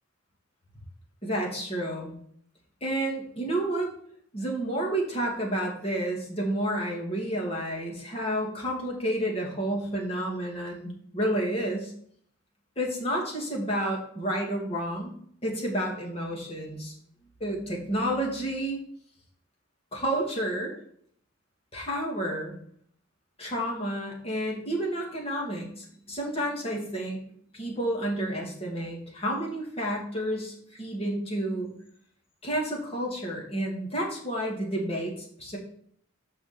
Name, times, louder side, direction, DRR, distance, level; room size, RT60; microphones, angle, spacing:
voice 1, 1.2-2.1 2.8-3.9 4.3-11.9 12.8-15.1 15.4-16.9 17.4-18.8 19.9-20.8 21.7-22.6 23.4-27.2 27.5-31.7 32.4-35.6, right 1 dB, 30° left, -2 dB, 2.5 m, -30 dB
6.6 x 5.7 x 7.1 m, 0.63 s
head